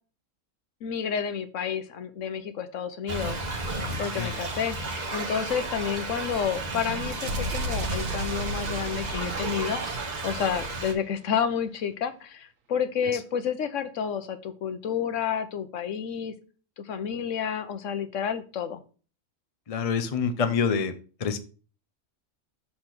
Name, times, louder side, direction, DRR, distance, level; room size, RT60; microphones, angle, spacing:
voice 1, 0.8-3.4 4.0-4.8 5.1-9.8 10.2-16.3 16.8-18.8, left 7 dB, 70° left, 10 dB, 1.2 m, -30 dB
Thunder / Rain, 3.1-10.9, right 2 dB, 35° right, 1.2 m, -33 dB
voice 2, 3.7-4.4 13.1-13.2 19.7-20.9 21.2-21.4, left 6 dB, 40° left, 8 dB, 0.6 m, -27 dB
sound 1, 7.2-11.1, right 2 dB, 80° right, 1.4 m, -35 dB
6.7 x 4.2 x 5.9 m, 0.37 s
omnidirectional pair, 1.4 m